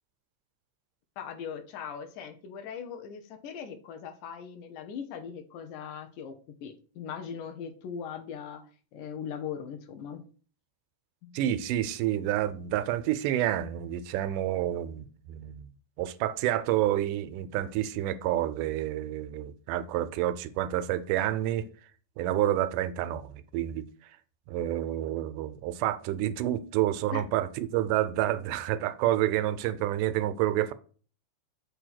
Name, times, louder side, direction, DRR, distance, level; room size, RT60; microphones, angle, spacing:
voice 1, 1.2-10.2 11.2-11.5 27.1-27.2, left 7 dB, 80° left, 2.3 m, -40 dB
voice 2, 11.3-15.7 16.0-21.7 22.2-23.8 24.5-30.7, right 13 dB, 90° right, 2.1 m, -29 dB
6.9 x 2.7 x 5.7 m
omnidirectional pair, 3.6 m